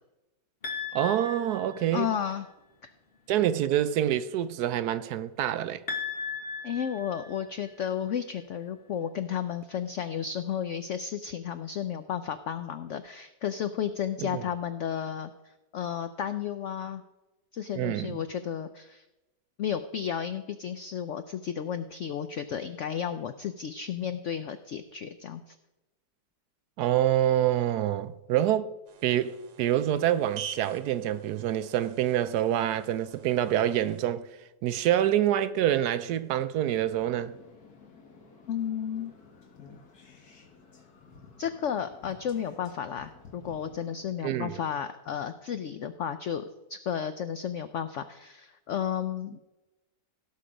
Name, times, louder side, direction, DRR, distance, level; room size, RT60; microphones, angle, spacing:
sound 1, 0.6-2.3 5.9-7.9, left 5 dB, 35° left, 1.4 m, -37 dB
voice 1, 0.9-2.1 3.3-5.8 14.2-14.4 17.8-18.2 26.8-28.7 29.0-34.3 34.6-37.3 44.2-44.6, right 11 dB, 70° right, 1.0 m, -26 dB
voice 2, 1.9-2.5 2.8-2.9 6.6-15.3 15.7-17.0 17.5-19.0 19.6-25.6 38.5-39.1 41.4-46.4 46.7-49.4, left 8 dB, 85° left, 0.6 m, -33 dB
sound 2, 28.8-34.1, right 9 dB, 90° right, 1.6 m, -46 dB
sound 3, 37.0-44.1, left 4 dB, 60° left, 1.9 m, -53 dB
17.0 x 5.7 x 5.0 m
omnidirectional pair, 1.9 m